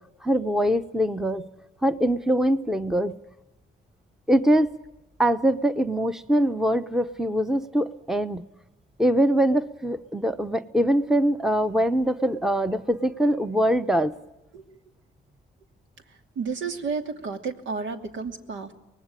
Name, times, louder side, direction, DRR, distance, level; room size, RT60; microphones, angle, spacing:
voice 1, 0.2-1.5 1.8-3.2 4.3-4.8 5.2-8.4 9.0-14.1, right 1 dB, ahead, 11 dB, 1.0 m, -23 dB
voice 2, 16.1-18.7, right 5 dB, 70° right, 6 dB, 2.8 m, -32 dB
24.5 x 19.5 x 9.0 m, 0.97 s
cardioid pair, 90°, 20 cm